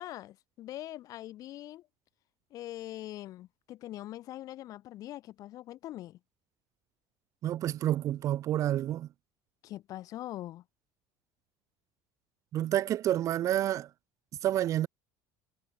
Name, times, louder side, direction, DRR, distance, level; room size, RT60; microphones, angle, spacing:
voice 1, 0.0-1.9 2.5-6.2 9.6-10.6, left 14 dB, 50° left, 5.9 m, -42 dB
voice 2, 7.4-9.1 12.5-13.9 14.4-14.9, right 12 dB, 45° right, 1.2 m, -29 dB
cardioid pair, 135°, 8 cm